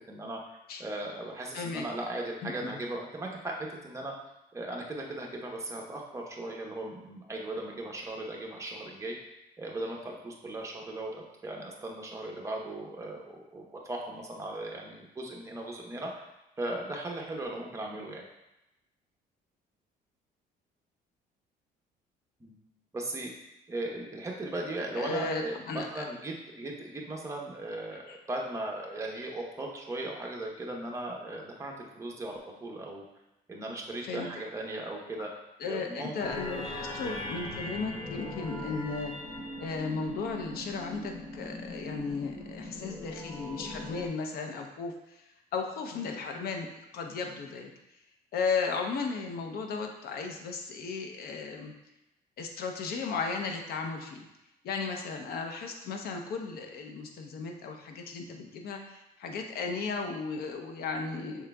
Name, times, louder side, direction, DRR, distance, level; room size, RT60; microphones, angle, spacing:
voice 1, 0.0-4.1 4.5-9.1 9.6-16.1 16.6-18.2 22.4-22.5 22.9-23.3 23.7-33.0 33.5-35.3 35.6-36.2 37.0-37.2, right 1 dB, 15° right, -1 dB, 0.9 m, -38 dB
voice 2, 1.5-1.9 2.4-2.8 25.0-26.0 27.9-28.2 34.0-34.3 35.6-39.1 39.6-45.2 45.5-46.7 46.9-47.7 48.3-51.7 52.4-54.2 54.6-61.5, left 4 dB, 65° left, 3 dB, 0.7 m, -35 dB
sound 1, 36.2-44.1, left 1 dB, 30° left, 0.7 m, -40 dB
5.9 x 3.7 x 2.3 m, 0.91 s
cardioid pair, 110°, 17 cm